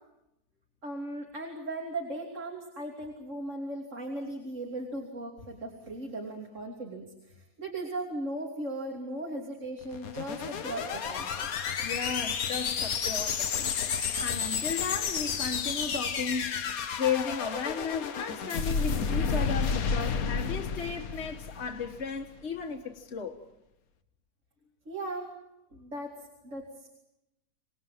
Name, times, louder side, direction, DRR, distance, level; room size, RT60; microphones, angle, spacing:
voice 1, 0.8-11.5 24.8-25.3 25.7-26.1 26.4-26.9, right 1 dB, 45° right, 3.4 m, -37 dB
sound 1, 9.8-22.2, left 6 dB, 60° left, 1.6 m, -31 dB
voice 2, 11.8-13.9 14.2-23.4, left 6 dB, 40° left, 1.9 m, -35 dB
27.0 x 20.0 x 7.5 m
omnidirectional pair, 1.8 m